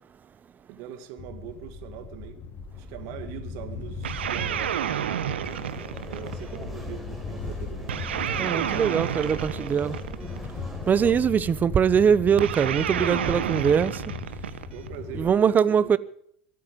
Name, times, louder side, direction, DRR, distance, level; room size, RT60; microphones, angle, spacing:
voice 1, 0.7-2.4 2.7-5.5 6.0-7.9 10.9-11.1 14.7-16.0, right 10 dB, 60° right, 2.1 m, -41 dB
sound 1, 1.2-15.3, left 5 dB, 40° left, 4.2 m, -38 dB
sound 2, 4.0-6.6 7.9-10.5 12.4-15.0, right 10 dB, 90° right, 1.1 m, -30 dB
sound 3, 5.4-11.1, right 1 dB, ahead, 4.0 m, -42 dB
voice 2, 8.4-10.0 10.9-14.0 15.1-16.0, right 7 dB, 30° right, 0.8 m, -22 dB
24.0 x 8.8 x 5.3 m
hypercardioid pair, 95°, 6 cm